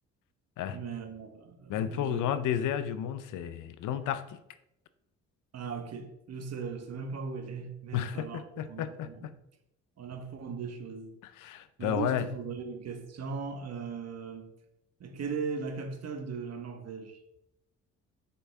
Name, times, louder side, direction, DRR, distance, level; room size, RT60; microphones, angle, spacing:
voice 1, 0.7-2.2 5.5-9.3 10.0-11.2 11.8-14.5 15.0-17.2, right 5 dB, 55° right, 5 dB, 1.4 m, -38 dB
voice 2, 1.7-4.4 7.9-9.3 11.4-12.3, left 10 dB, 85° left, 12 dB, 0.7 m, -32 dB
8.0 x 5.8 x 3.5 m, 0.84 s
cardioid pair, 90°, 30 cm